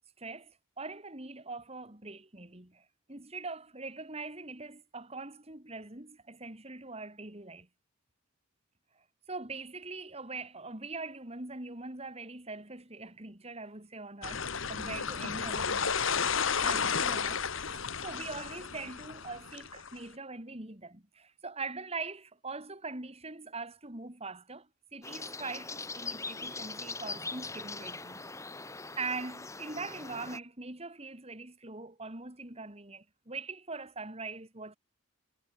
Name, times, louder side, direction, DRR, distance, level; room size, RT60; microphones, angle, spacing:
voice 1, 0.2-0.5 0.8-7.7 9.3-17.4 17.7-28.2 29.0-34.8, right 3 dB, 30° right, 2.8 m, -42 dB
sound 1, 14.2-20.0, left 6 dB, 65° left, 1.7 m, -32 dB
sound 2, 25.0-30.4, left 3 dB, 15° left, 1.4 m, -41 dB
head